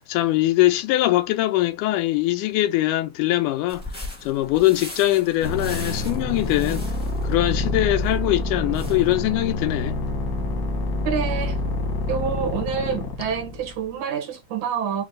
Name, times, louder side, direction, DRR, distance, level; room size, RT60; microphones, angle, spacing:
voice 1, 0.0-3.8 4.2-6.9 7.2-10.0, left 16 dB, 90° left, 2.1 m, -22 dB
sound 1, 3.7-10.1, left 1 dB, 10° left, 0.5 m, -40 dB
sound 2, 5.4-13.9, left 2 dB, 60° left, 1.0 m, -27 dB
voice 2, 11.1-11.6 12.1-15.1, right 7 dB, 75° right, 2.6 m, -27 dB
6.3 x 2.2 x 3.7 m
omnidirectional pair, 3.5 m